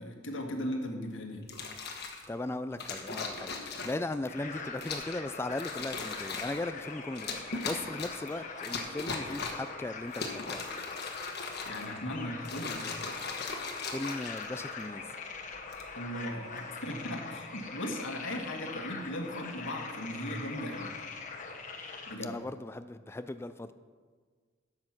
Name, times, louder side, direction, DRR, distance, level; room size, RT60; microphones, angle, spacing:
voice 1, 0.0-1.5 11.7-12.9 15.9-21.0 22.1-22.3, equal, 90° left, 1.6 m, -37 dB
sound 1, 1.4-2.2 2.8-4.1 4.8-5.2 5.5-6.6 7.1-8.3 8.6-9.7 10.1-12.0 12.4-14.8 15.5-15.9, left 4 dB, 60° left, 1.4 m, -38 dB
voice 2, 2.3-10.6 13.8-15.1 22.2-23.7, left 2 dB, 15° left, 0.3 m, -38 dB
sound 2, 4.3-22.2, left 4 dB, 40° left, 1.3 m, -42 dB
12.0 x 7.6 x 5.9 m
head